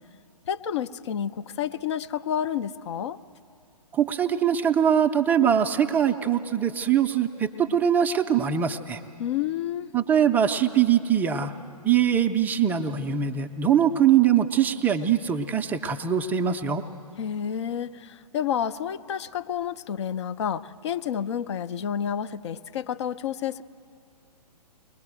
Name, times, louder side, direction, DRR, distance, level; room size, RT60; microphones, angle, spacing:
voice 1, 0.5-3.2 9.2-9.9 17.2-23.6, left 9 dB, 45° left, 12 dB, 0.7 m, -30 dB
voice 2, 3.9-9.0 9.9-11.5 11.8-16.8, right 9 dB, 10° right, 5 dB, 0.5 m, -22 dB
22.0 x 20.5 x 7.9 m, 2.4 s
figure-of-eight pair, 125°, 20 cm